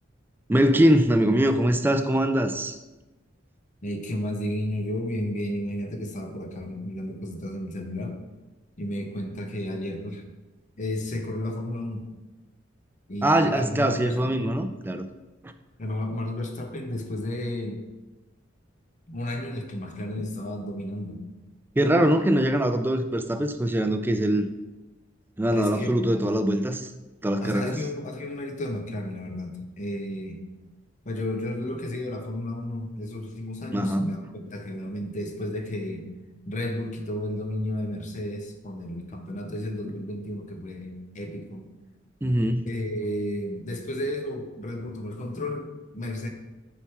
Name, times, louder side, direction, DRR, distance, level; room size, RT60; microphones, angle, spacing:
voice 1, 0.5-2.8 13.2-15.1 15.4-15.5 20.2-20.3 21.8-24.5 25.4-26.9 27.2-27.8 33.7-34.1 42.2-42.7, right 1 dB, 10° right, 8 dB, 0.4 m, -22 dB
voice 2, 3.8-8.2 8.8-10.2 10.8-12.1 13.1-14.6 15.8-17.9 19.1-21.2 25.5-26.1 27.4-30.4 31.1-36.1 36.4-41.7 42.7-46.3, left 1 dB, 40° left, 5 dB, 0.7 m, -32 dB
7.1 x 4.6 x 3.6 m, 1.1 s
head